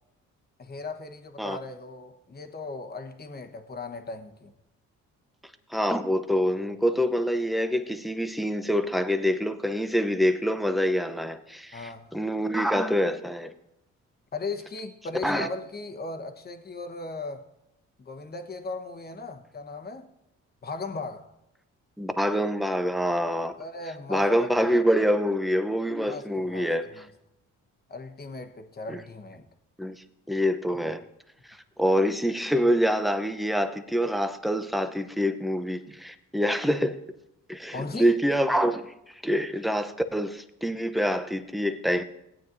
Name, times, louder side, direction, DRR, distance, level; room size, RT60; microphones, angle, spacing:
voice 1, 0.6-4.5 11.7-12.1 14.3-17.5 18.0-20.1 20.6-21.3 23.6-24.6 26.1-27.1 27.9-29.5 30.7-30.9 37.7-38.1, left 3 dB, 30° left, 1.1 m, -37 dB
voice 2, 5.7-13.5 15.2-15.5 22.0-23.5 24.1-26.9 28.9-29.0 29.8-30.0 30.3-31.0 31.8-37.0 37.5-42.0, equal, ahead, 0.7 m, -26 dB
17.0 x 9.0 x 2.7 m
cardioid pair, 90°, 30 cm